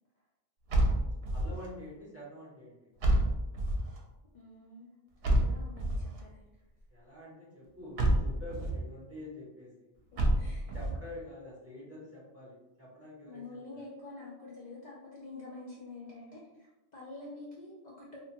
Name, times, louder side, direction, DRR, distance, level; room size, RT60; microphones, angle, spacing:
sound 1, 0.7-1.7 3.0-4.0 5.2-6.2 8.0-8.8 10.2-11.0, right 1 dB, 70° right, 0.8 m, -28 dB
voice 1, 1.3-2.8 6.9-9.9 10.7-13.8, left 1 dB, 15° right, -7 dB, 0.6 m, -47 dB
voice 2, 4.3-4.9 5.3-6.4 10.1-10.7 13.3-18.2, left 2 dB, 55° left, -5 dB, 0.5 m, -47 dB
2.8 x 2.2 x 2.8 m, 1.0 s
omnidirectional pair, 1.1 m